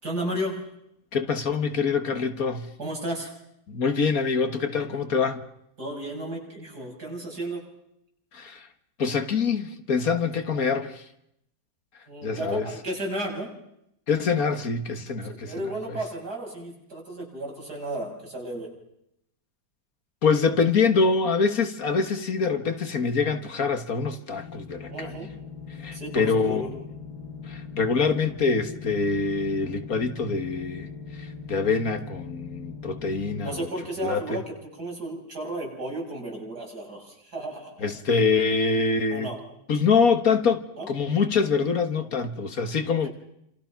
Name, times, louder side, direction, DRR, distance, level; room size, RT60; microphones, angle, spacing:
voice 1, 0.0-0.6 2.8-3.3 5.8-7.6 12.1-13.5 15.2-18.7 24.9-25.3 25.9-26.7 33.4-37.9 39.1-39.4 40.8-40.9 43.0-43.1, right 1 dB, 70° right, 7.4 m, -33 dB
voice 2, 1.1-2.7 3.7-5.4 8.3-8.7 9.0-11.0 12.2-12.7 14.1-16.0 20.2-25.1 25.8-26.8 27.5-30.9 31.2-33.6 34.0-34.4 37.8-39.3 39.7-43.1, left 5 dB, 60° left, 1.9 m, -25 dB
sound 1, 24.3-33.6, left 5 dB, 75° left, 1.8 m, -40 dB
28.5 x 27.0 x 5.9 m
omnidirectional pair, 1.8 m